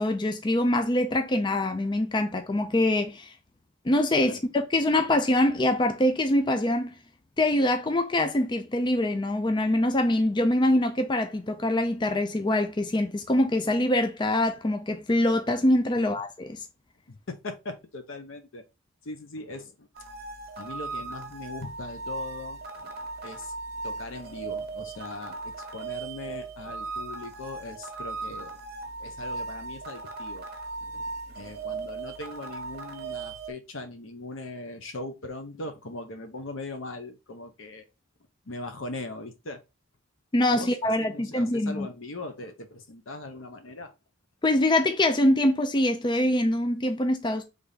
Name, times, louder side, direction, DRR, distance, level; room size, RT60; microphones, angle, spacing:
voice 1, 0.0-3.3 3.9-6.9 7.4-16.6 40.3-41.9 44.4-47.4, left 1 dB, 25° left, 0.5 m, -24 dB
voice 2, 17.1-18.6 19.0-19.9 20.6-23.5 23.8-28.6 29.0-30.5 30.8-37.8 38.5-39.6 40.5-43.9, left 2 dB, 85° left, 0.9 m, -40 dB
sound 1, 19.9-33.5, right 3 dB, 55° right, 0.9 m, -37 dB
3.5 x 3.5 x 3.9 m
head